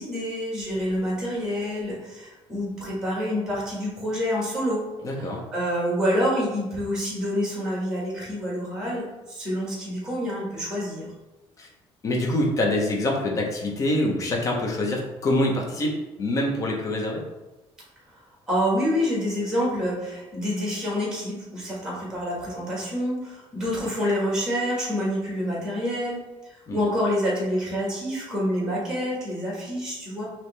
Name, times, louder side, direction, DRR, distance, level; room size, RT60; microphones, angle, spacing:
voice 1, 0.0-4.9 5.1-11.1 18.5-26.2 26.7-30.2, equal, 5° right, -4 dB, 1.5 m, -27 dB
voice 2, 5.0-5.4 11.6-11.7 12.0-17.2 26.7-26.8, left 1 dB, 30° left, 1 dB, 0.7 m, -25 dB
4.7 x 2.9 x 3.3 m, 1.1 s
cardioid pair, 160°, 11 cm